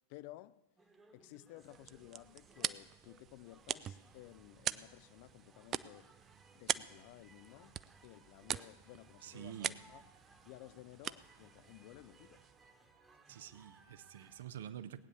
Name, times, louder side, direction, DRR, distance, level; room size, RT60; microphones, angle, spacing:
voice 1, 0.1-0.6 1.1-6.2 6.5-7.8 8.0-10.0 10.4-12.4, left 17 dB, 45° left, 0.4 m, -55 dB
sound 1, 0.8-14.5, right 3 dB, 10° right, 1.3 m, -65 dB
sound 2, 1.6-12.8, right 10 dB, 30° right, 0.4 m, -44 dB
voice 2, 9.2-9.8 13.3-15.0, right 10 dB, 60° right, 0.7 m, -48 dB
18.5 x 9.4 x 7.0 m
figure-of-eight pair, 90°, 0 cm